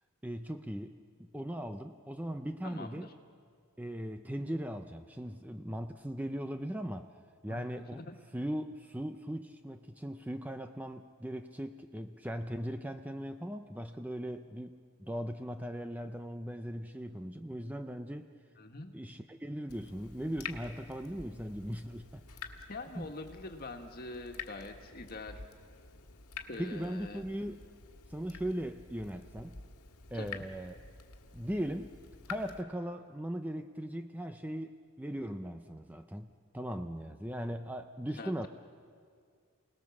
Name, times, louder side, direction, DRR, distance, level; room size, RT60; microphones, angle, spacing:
voice 1, 0.2-1.0 1.3-3.1 3.8-8.0 8.3-18.3 18.9-22.2 23.0-23.1 26.6-27.6 28.1-29.6 30.1-30.8 31.3-31.9 32.3-38.5, equal, 5° right, 7 dB, 0.5 m, -39 dB
voice 2, 2.6-3.1 7.5-8.2 18.6-18.9 22.7-25.4 26.5-27.2 30.1-30.5 38.2-38.5, left 2 dB, 45° left, 4 dB, 1.7 m, -44 dB
Water tap faucet / Drip, 19.7-32.6, left 5 dB, 85° left, 1.9 m, -49 dB
29.5 x 19.0 x 7.3 m, 2.1 s
head